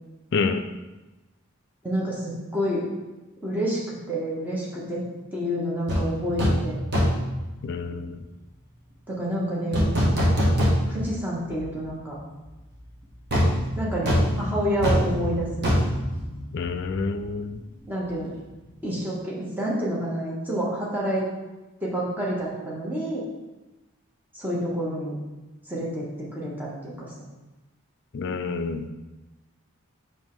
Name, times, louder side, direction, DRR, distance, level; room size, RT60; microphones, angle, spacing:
voice 1, 1.8-2.9 3.4-3.8 4.1-5.0 5.3-6.8 9.1-9.9 10.9-12.2 13.8-15.7 17.9-18.3 18.8-21.3 21.8-23.2 24.3-25.1 25.7-26.1 26.3-27.1, equal, 10° right, -6 dB, 1.1 m, -28 dB
sound 1, 5.9-6.1 6.4-6.7 6.9-7.3 9.7-11.2 11.5-11.6 13.3-17.0 17.2-17.4, equal, 50° right, 1.3 m, -23 dB
voice 2, 7.6-8.2 16.5-17.6 28.1-28.9, left 4 dB, 50° left, 7 dB, 0.3 m, -28 dB
5.6 x 5.4 x 3.1 m, 1.1 s
head